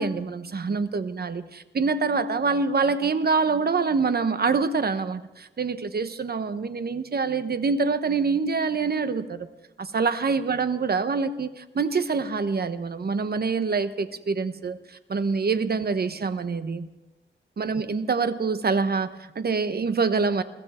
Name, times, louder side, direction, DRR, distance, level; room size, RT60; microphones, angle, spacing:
voice 1, 0.0-9.5 9.8-16.9 17.6-20.4, right 4 dB, 50° right, 11 dB, 1.0 m, -25 dB
21.5 x 15.0 x 4.3 m, 1.1 s
wide cardioid pair, 105°, 20 cm